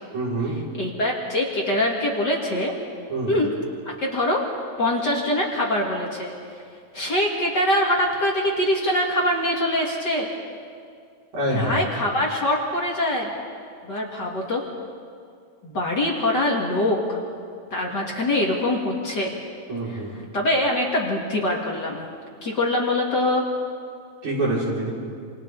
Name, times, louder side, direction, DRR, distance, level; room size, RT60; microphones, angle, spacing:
voice 1, 0.1-0.6 3.1-3.3 11.3-11.8 19.7-20.1 24.2-24.9, right 1 dB, 75° right, -7 dB, 7.4 m, -25 dB
voice 2, 0.7-2.7 3.3-3.5 3.9-4.5 4.8-6.3 6.9-10.3 11.5-13.3 13.8-14.6 15.6-17.2 17.7-19.3 19.9-22.0 22.4-23.5, left 1 dB, 35° left, -2 dB, 2.7 m, -23 dB
28.0 x 28.0 x 4.1 m, 2.2 s
omnidirectional pair, 3.4 m